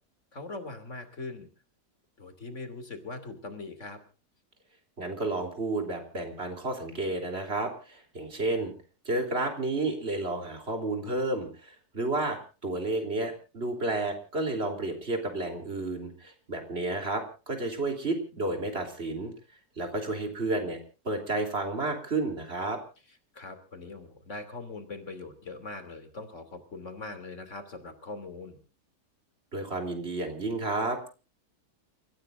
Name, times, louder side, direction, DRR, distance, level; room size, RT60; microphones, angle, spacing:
voice 1, 0.3-1.5 2.2-4.0 23.1-28.6, left 3 dB, 45° left, 8 dB, 3.1 m, -41 dB
voice 2, 5.0-8.7 9.1-19.3 19.8-20.8 21.1-22.8 29.5-31.1, right 2 dB, 35° right, 4 dB, 3.7 m, -31 dB
29.5 x 15.5 x 2.6 m, 0.35 s
omnidirectional pair, 1.8 m